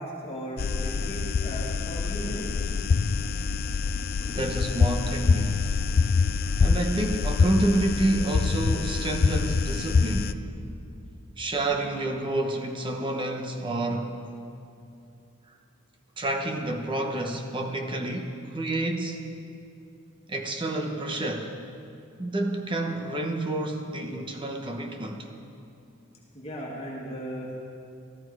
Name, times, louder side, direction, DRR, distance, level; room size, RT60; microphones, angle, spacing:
voice 1, 0.0-2.6 26.3-27.7, equal, 25° left, -4 dB, 1.9 m, -36 dB
sound 1, 0.6-10.3, left 4 dB, 45° left, 0.4 m, -25 dB
voice 2, 4.2-5.6 6.6-10.4 11.4-14.1 16.2-19.2 20.3-21.6 22.2-25.3, right 1 dB, 25° right, 3 dB, 0.9 m, -29 dB
15.0 x 14.0 x 4.7 m, 2.6 s
head